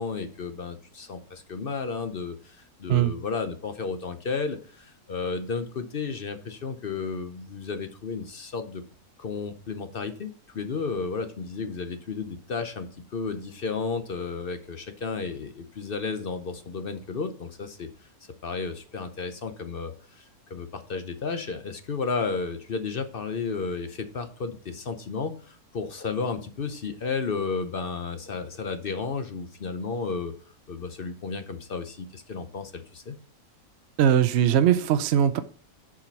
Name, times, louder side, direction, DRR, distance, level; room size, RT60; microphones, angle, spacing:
voice 1, 0.0-8.8 9.2-18.1 18.4-30.4 30.7-33.2, left 4 dB, 50° left, 9 dB, 0.8 m, -33 dB
voice 2, 34.0-35.4, right 9 dB, 65° right, 10 dB, 0.6 m, -20 dB
7.2 x 5.0 x 5.3 m, 0.42 s
omnidirectional pair, 1.6 m